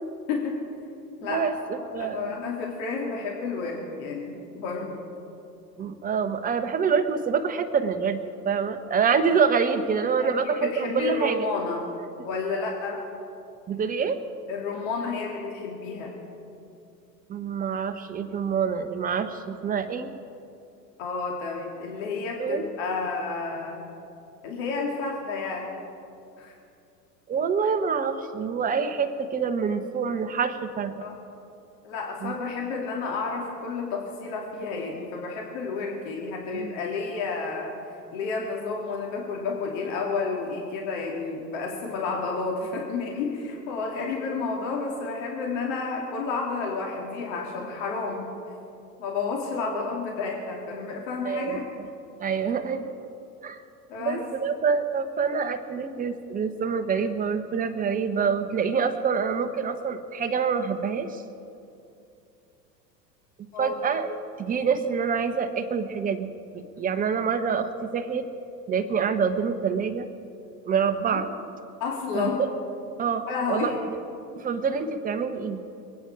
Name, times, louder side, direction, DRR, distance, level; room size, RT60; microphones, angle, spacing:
voice 1, 0.3-0.6 1.2-1.5 1.8-5.0 10.2-11.9 12.3-13.0 14.5-16.2 21.0-23.8 24.4-25.8 26.4-26.5 31.0-31.1 31.8-37.7 38.1-48.3 49.0-51.6 53.9-54.2 63.5-63.8 71.1-71.2 71.8-72.4 73.3-73.8, left 4 dB, 50° left, 0 dB, 2.7 m, -31 dB
voice 2, 1.3-2.4 5.8-8.2 8.4-11.4 13.7-14.2 17.3-20.1 22.4-22.6 27.3-30.9 32.2-32.3 36.5-36.8 51.2-51.9 52.2-52.9 53.4-53.6 54.0-61.2 63.6-66.3 66.8-68.3 68.7-70.1 70.7-71.3 72.1-72.5 73.0-73.7 74.4-75.6, right 6 dB, 15° right, 7 dB, 1.1 m, -26 dB
27.5 x 9.5 x 4.9 m, 2.6 s
figure-of-eight pair, 90°, 49 cm